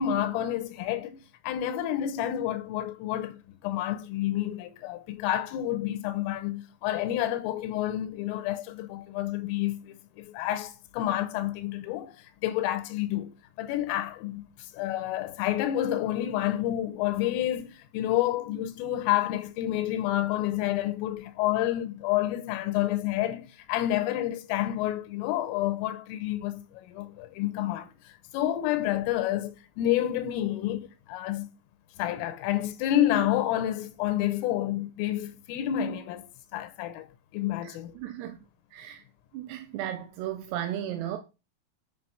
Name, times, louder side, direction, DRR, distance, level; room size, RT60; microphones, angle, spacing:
voice 1, 0.0-13.3 13.6-31.5 32.0-36.3 36.5-37.1 37.3-37.9, left 12 dB, 85° left, 3.5 m, -29 dB
voice 2, 37.6-38.4 38.7-39.0 39.3-41.2, right 11 dB, 80° right, 2.4 m, -35 dB
9.4 x 6.0 x 5.9 m
omnidirectional pair, 5.9 m